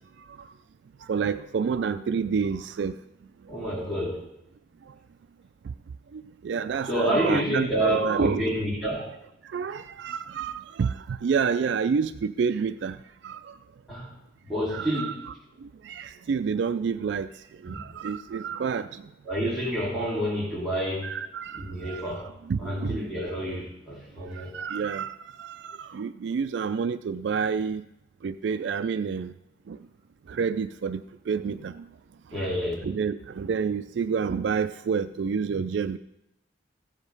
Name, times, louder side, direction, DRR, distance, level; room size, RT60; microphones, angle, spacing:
voice 1, 1.1-3.0 6.1-8.5 9.5-13.0 13.2-13.5 14.7-15.3 15.8-17.3 17.6-19.0 21.0-22.1 22.4-23.1 24.4-27.8 28.2-29.3 29.7-29.8 30.3-31.8 32.8-36.0, right 6 dB, 65° right, 12 dB, 0.3 m, -29 dB
voice 2, 3.5-4.2 6.9-9.2 13.9-14.1 14.4-15.2 17.7-17.9 19.2-21.1 21.5-22.3 22.6-24.5 32.3-32.7, equal, ahead, -6 dB, 2.8 m, -28 dB
15.0 x 5.1 x 5.4 m, 0.86 s
head